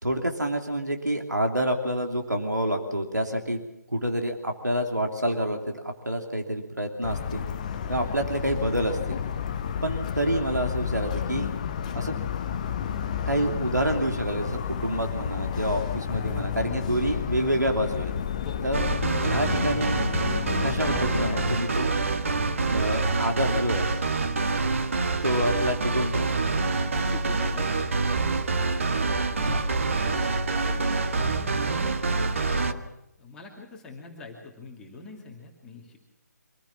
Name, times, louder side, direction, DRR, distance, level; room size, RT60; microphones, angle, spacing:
voice 1, 0.0-3.6 3.9-7.4 7.9-9.2 9.8-11.5 11.9-12.1 13.3-18.1 18.6-20.0 20.6-21.9 22.7-23.9 25.2-26.3 29.1-29.6, right 1 dB, 80° right, 3 dB, 3.1 m, -28 dB
Motor vehicle (road) / Siren, 7.0-21.6, left 8 dB, 25° left, 0.8 m, -31 dB
sound 1, 18.7-32.7, right 3 dB, 45° right, 1.6 m, -26 dB
voice 2, 26.7-28.5 30.0-30.2 30.6-31.9 32.5-32.8 33.2-36.0, left 2 dB, 5° left, -2 dB, 2.6 m, -44 dB
26.0 x 16.5 x 7.3 m, 0.91 s
figure-of-eight pair, 150°, 9 cm